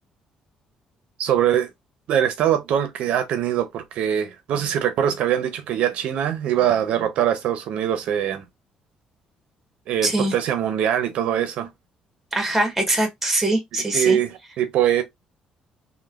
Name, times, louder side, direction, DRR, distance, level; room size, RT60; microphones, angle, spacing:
voice 1, 1.2-1.7 2.1-8.4 9.9-11.7 13.9-15.0, right 10 dB, 65° right, 0.5 m, -22 dB
voice 2, 10.0-10.3 12.3-14.2, right 1 dB, 5° right, 0.8 m, -22 dB
3.1 x 2.0 x 2.2 m
cardioid pair, 155°, 2 cm